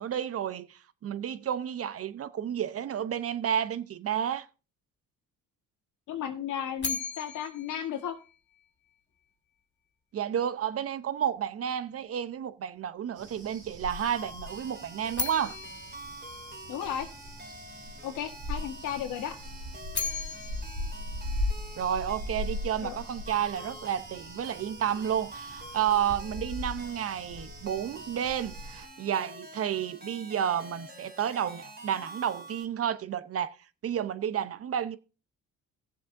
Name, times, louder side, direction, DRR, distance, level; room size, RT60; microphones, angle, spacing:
voice 1, 0.0-4.5 10.1-15.6 21.8-33.6 33.8-35.0, right 9 dB, 50° right, 0.8 m, -31 dB
voice 2, 6.1-8.2 16.7-17.1 18.0-19.4 22.8-23.0, left 9 dB, 85° left, 1.5 m, -34 dB
sound 1, 6.8-8.9 15.1-17.3 19.7-22.1, left 5 dB, 40° left, 2.2 m, -38 dB
sound 2, 13.2-28.8, left 1 dB, 90° right, 3.1 m, -39 dB
sound 3, 13.9-32.6, right 1 dB, 35° right, 2.7 m, -47 dB
17.0 x 7.4 x 2.6 m
cardioid pair, 90°, 30 cm